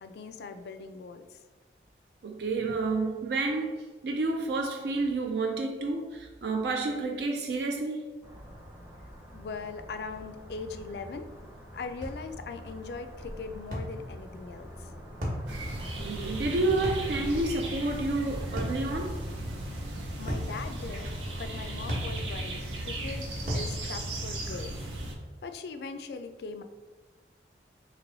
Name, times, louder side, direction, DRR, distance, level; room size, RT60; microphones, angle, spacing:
voice 1, 0.0-1.4 9.3-11.3 11.7-14.9 20.2-21.1 21.4-23.3 23.5-24.8 25.4-26.6, left 4 dB, 65° left, 0.3 m, -40 dB
voice 2, 2.2-3.8 4.0-8.1 16.0-19.2, right 3 dB, 65° right, 0.4 m, -30 dB
sound 1, 8.2-23.8, equal, 10° right, 0.6 m, -46 dB
sound 2, 12.0-12.2 13.7-13.9 15.2-15.5 16.8-17.1 18.6-18.8 20.3-20.5 21.9-22.1 23.5-23.7, equal, 45° right, 1.0 m, -32 dB
sound 3, 15.5-25.2, right 1 dB, 85° right, 0.7 m, -36 dB
3.0 x 2.9 x 3.9 m
head